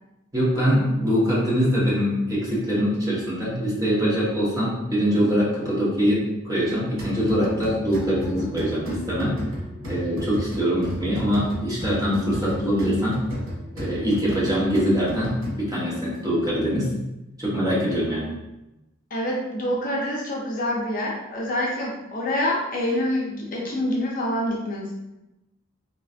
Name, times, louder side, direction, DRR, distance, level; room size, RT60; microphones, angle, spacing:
voice 1, 0.3-9.4 9.9-13.2 13.7-16.9 17.4-18.3, equal, 20° right, -7 dB, 1.2 m, -23 dB
sound 1, 7.0-15.9, equal, 80° right, 1.4 m, -34 dB
voice 2, 19.1-24.9, left 1 dB, 45° left, -3 dB, 0.6 m, -26 dB
4.0 x 3.0 x 2.4 m, 0.95 s
head